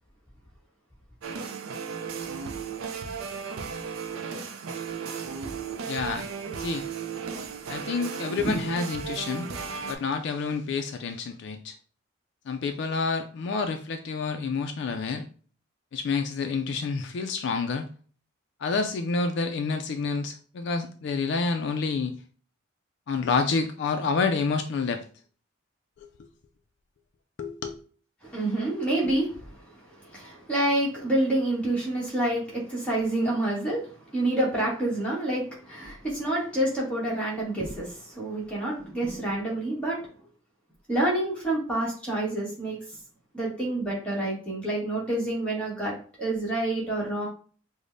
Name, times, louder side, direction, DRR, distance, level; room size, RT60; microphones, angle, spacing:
sound 1, 1.2-10.0, right 6 dB, 85° right, 0.4 m, -35 dB
voice 1, 5.9-6.3 6.6-6.8 7.7-9.5 9.9-11.7 12.5-15.3 15.9-17.9 18.6-22.2 23.1-25.0 26.0-26.1 27.4-27.8, left 4 dB, 55° left, 7 dB, 0.3 m, -28 dB
voice 2, 28.2-40.0 40.9-42.8 43.3-47.3, right 1 dB, 5° left, -6 dB, 1.2 m, -28 dB
4.9 x 2.1 x 2.6 m, 0.42 s
head